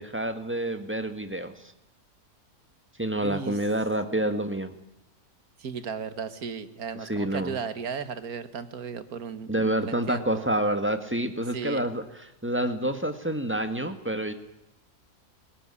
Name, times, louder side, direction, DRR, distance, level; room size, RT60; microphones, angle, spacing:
voice 1, 0.0-1.7 3.0-4.7 7.1-7.5 9.5-12.0 12.4-14.3, right 1 dB, 10° right, 8 dB, 1.7 m, -28 dB
voice 2, 3.2-3.6 5.6-10.5 11.5-11.9, right 6 dB, 70° right, 12 dB, 1.9 m, -35 dB
21.0 x 18.5 x 9.9 m, 0.84 s
omnidirectional pair, 1.6 m